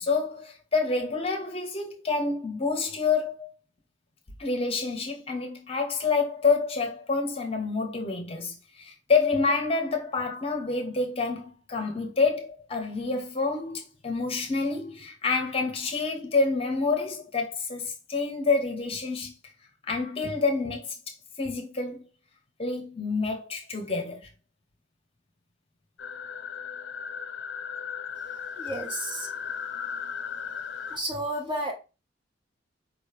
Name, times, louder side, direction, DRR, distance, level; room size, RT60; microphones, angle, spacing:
voice 1, 0.0-3.5 4.4-19.3 19.9-22.0 22.6-24.3, left 4 dB, 30° left, 0.9 m, -28 dB
sound 1, 26.0-31.0, left 7 dB, 70° left, 0.4 m, -36 dB
voice 2, 28.6-29.3 30.9-31.7, right 1 dB, 25° right, 1.3 m, -31 dB
4.9 x 3.1 x 3.3 m
head